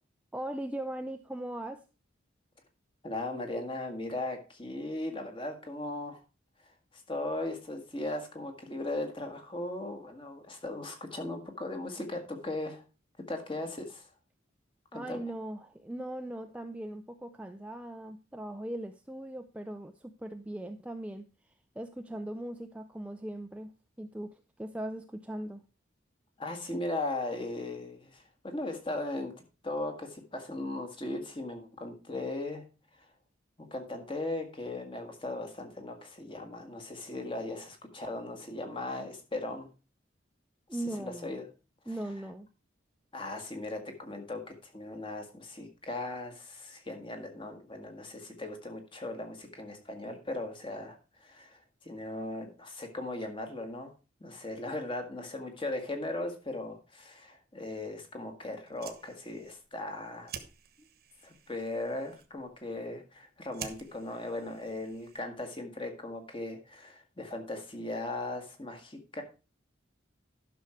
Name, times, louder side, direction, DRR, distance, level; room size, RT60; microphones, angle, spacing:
voice 1, 0.3-1.8 14.9-21.2 21.8-23.7 24.0-24.3 24.6-25.6 40.7-41.3 41.9-42.5, right 1 dB, 5° right, 6 dB, 0.4 m, -39 dB
voice 2, 3.0-6.2 7.1-12.8 13.3-14.1 14.9-15.2 26.4-29.3 29.6-32.6 33.6-39.7 41.0-41.5 41.8-42.0 43.1-53.9 54.2-60.3 61.2-69.2, left 2 dB, 25° left, 5 dB, 1.6 m, -38 dB
Fire, 58.6-65.5, right 8 dB, 50° right, 1.1 m, -50 dB
11.5 x 6.2 x 4.4 m, 0.31 s
head